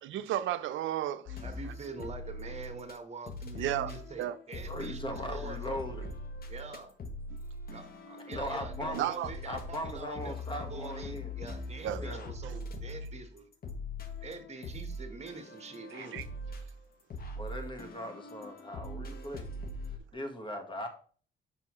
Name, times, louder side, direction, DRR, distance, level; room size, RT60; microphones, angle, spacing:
voice 1, 0.0-1.4 3.6-3.9 4.2-4.4 8.9-9.3 11.8-12.0 15.9-16.3, right 12 dB, 75° right, 0.5 m, -33 dB
sound 1, 1.3-3.0 3.3-20.0, left 2 dB, 50° left, 1.1 m, -42 dB
voice 2, 1.4-5.8 6.5-6.9 7.7-13.5 14.2-16.2, right 3 dB, 35° right, 1.3 m, -45 dB
voice 3, 4.7-6.1 8.3-9.1 9.4-11.3 12.0-12.3 17.3-19.5 20.1-20.9, equal, 25° left, 1.4 m, -39 dB
5.8 x 5.6 x 3.1 m
cardioid pair, 90°, 20 cm